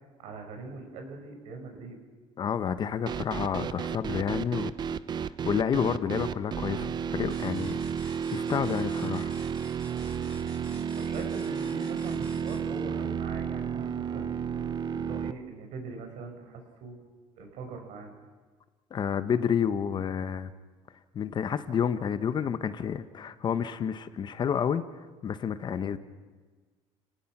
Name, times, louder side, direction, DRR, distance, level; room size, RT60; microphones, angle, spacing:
voice 1, 0.2-2.0 10.9-14.3 14.9-17.0 17.4-18.1, right 3 dB, 70° right, 4 dB, 5.3 m, -41 dB
voice 2, 2.4-4.7 5.4-7.8 8.1-9.3 18.9-20.5 21.1-24.8 25.2-26.0, left 8 dB, 40° left, 13 dB, 1.0 m, -29 dB
sound 1, 3.1-15.3, right 7 dB, 35° right, 0.7 m, -32 dB
sound 2, 7.3-12.8, left 1 dB, 5° left, 6.4 m, -53 dB
30.0 x 18.5 x 6.0 m, 1.4 s
cardioid pair, 120°, 12 cm